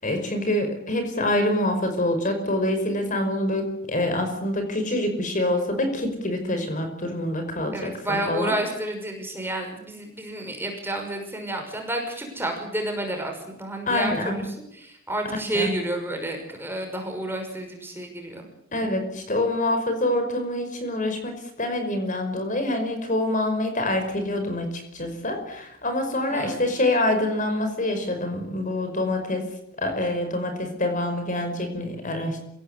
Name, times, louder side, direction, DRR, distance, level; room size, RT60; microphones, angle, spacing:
voice 1, 0.0-8.6 13.9-14.4 15.5-15.7 18.7-29.5 29.8-32.4, left 1 dB, 40° left, 6 dB, 5.3 m, -26 dB
voice 2, 7.7-14.4 14.7-18.5 26.3-26.6, right 1 dB, 10° right, 3 dB, 5.9 m, -30 dB
27.5 x 17.0 x 8.4 m, 0.77 s
head